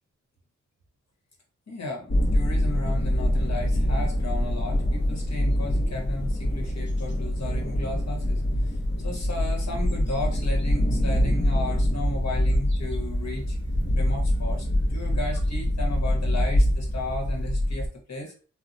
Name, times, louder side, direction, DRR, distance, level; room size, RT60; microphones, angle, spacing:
voice 1, 1.7-8.8 9.0-13.6 14.0-18.3, left 2 dB, 65° left, 0 dB, 1.1 m, -34 dB
sound 1, 2.1-17.9, equal, 40° left, 0.8 m, -25 dB
sound 2, 12.1-17.3, equal, 5° left, 0.5 m, -38 dB
2.7 x 2.0 x 2.6 m, 0.37 s
cardioid pair, 45°, 29 cm